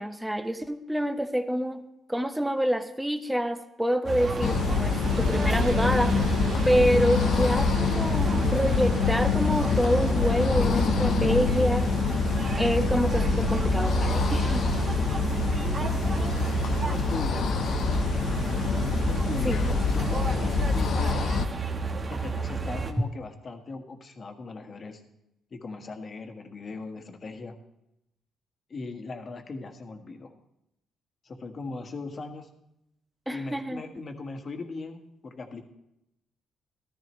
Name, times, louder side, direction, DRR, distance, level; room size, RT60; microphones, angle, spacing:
voice 1, 0.0-1.8 2.1-6.2 6.6-11.9 12.6-14.7 19.4-19.6 33.3-33.8, equal, 5° right, 8 dB, 0.9 m, -27 dB
sound 1, 4.0-22.9, right 4 dB, 40° right, 1.3 m, -30 dB
sound 2, 4.2-19.8, right 2 dB, 75° right, 1.8 m, -43 dB
sound 3, 4.4-21.5, left 6 dB, 65° left, 0.7 m, -26 dB
voice 2, 15.8-16.3 16.7-17.4 18.9-21.3 22.1-25.0 25.5-27.5 28.7-30.3 31.2-32.5 33.3-35.6, left 3 dB, 40° left, 5 dB, 1.6 m, -39 dB
14.0 x 13.5 x 3.2 m, 0.85 s
cardioid pair, 90°, 0 cm